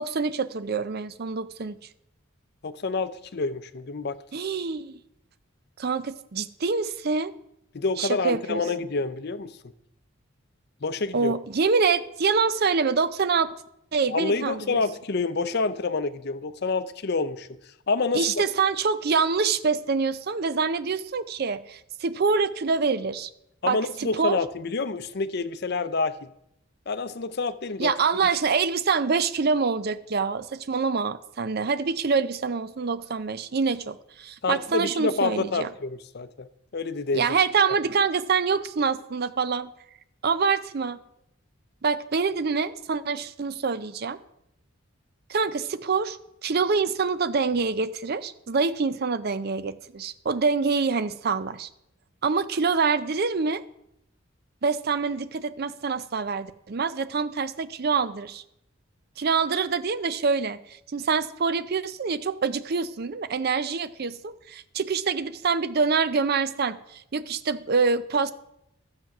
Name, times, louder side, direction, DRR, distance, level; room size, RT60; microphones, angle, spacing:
voice 1, 0.0-1.8 4.3-4.9 5.8-7.3 8.0-8.6 11.1-13.5 13.9-14.8 18.1-23.3 23.7-24.4 27.8-35.7 37.1-39.7 40.2-41.0 41.8-44.2 45.3-46.2 46.4-51.7 52.2-53.6 54.6-58.4 59.2-68.3, right 5 dB, 45° right, 14 dB, 0.5 m, -25 dB
voice 2, 2.6-4.2 7.7-9.5 10.8-11.3 14.1-17.6 17.9-18.4 23.6-26.3 26.9-27.9 28.2-28.4 34.4-36.5 36.7-37.2, left 3 dB, 50° left, 13 dB, 0.6 m, -28 dB
12.0 x 7.5 x 5.9 m, 0.81 s
head